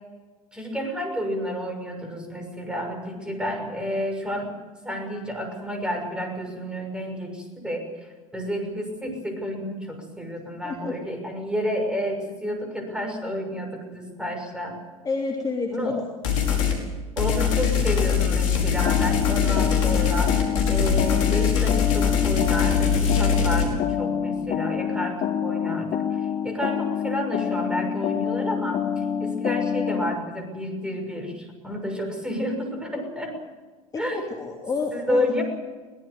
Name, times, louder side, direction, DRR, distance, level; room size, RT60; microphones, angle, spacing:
voice 1, 0.5-4.6 4.8-14.8 15.7-16.0 17.2-20.4 20.7-33.4 34.0-34.2 34.9-35.4, equal, 5° right, 4 dB, 6.2 m, -30 dB
voice 2, 15.0-16.0 33.9-35.3, left 4 dB, 20° left, 0 dB, 3.0 m, -29 dB
sound 1, 16.2-16.8 17.2-23.6, left 7 dB, 60° left, 5.1 m, -22 dB
sound 2, 18.9-30.1, left 8 dB, 35° left, 1.6 m, -27 dB
22.5 x 18.5 x 8.0 m, 1.3 s
figure-of-eight pair, 75°, 18 cm